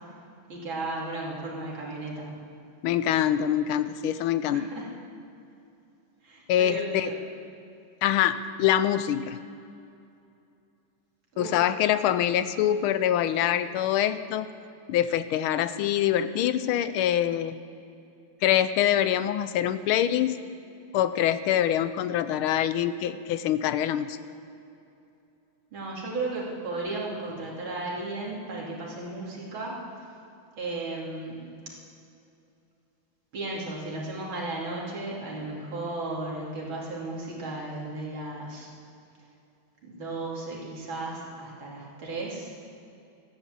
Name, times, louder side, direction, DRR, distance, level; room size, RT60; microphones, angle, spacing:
voice 1, 0.5-2.3 4.5-4.9 6.2-7.2 11.3-11.6 25.7-29.8 30.6-31.4 33.3-38.7 39.8-42.5, right 2 dB, 65° right, -3 dB, 3.4 m, -35 dB
voice 2, 2.8-4.7 6.5-7.1 8.0-9.4 11.4-14.6 14.9-17.6 18.4-20.4 20.9-24.2, left 11 dB, 80° left, 13 dB, 1.4 m, -25 dB
14.5 x 10.5 x 7.6 m, 2.6 s
omnidirectional pair, 2.4 m